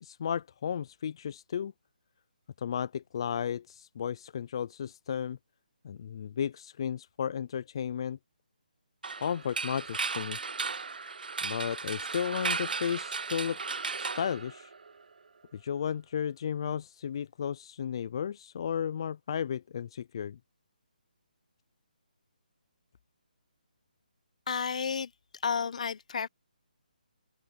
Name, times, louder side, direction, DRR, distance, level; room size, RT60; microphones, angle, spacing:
voice 1, 0.0-1.7 2.6-5.4 5.8-8.2 9.2-10.4 11.4-13.6 14.0-14.7 15.5-20.4, left 8 dB, 30° left, 0.3 m, -34 dB
sound 1, 9.0-15.0, right 4 dB, 75° right, 1.1 m, -35 dB
voice 2, 24.5-25.1 25.4-26.3, left 6 dB, 50° left, 0.8 m, -31 dB
hypercardioid pair, 170°, 5 cm